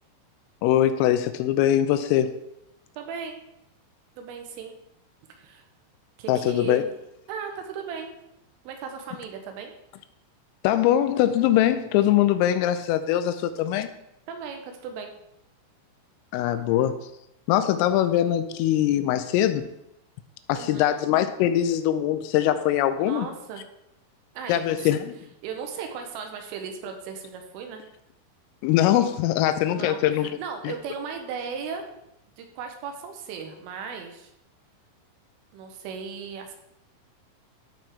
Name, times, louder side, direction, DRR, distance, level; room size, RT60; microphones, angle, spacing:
voice 1, 0.6-2.3 6.3-6.8 10.6-13.9 16.3-17.0 17.5-19.7 20.5-23.3 24.5-25.1 28.6-30.4 30.6-30.7, left 12 dB, 85° left, 10 dB, 3.1 m, -22 dB
voice 2, 3.0-3.4 4.2-4.8 5.4-5.6 6.2-6.9 7.3-8.1 8.6-9.7 14.3-15.1 20.5-20.9 23.0-23.6 24.3-24.9 25.4-27.8 29.7-31.9 32.4-34.3 35.5-36.5, right 6 dB, 80° right, 4 dB, 3.4 m, -36 dB
14.0 x 5.8 x 3.6 m, 0.83 s
omnidirectional pair, 6.0 m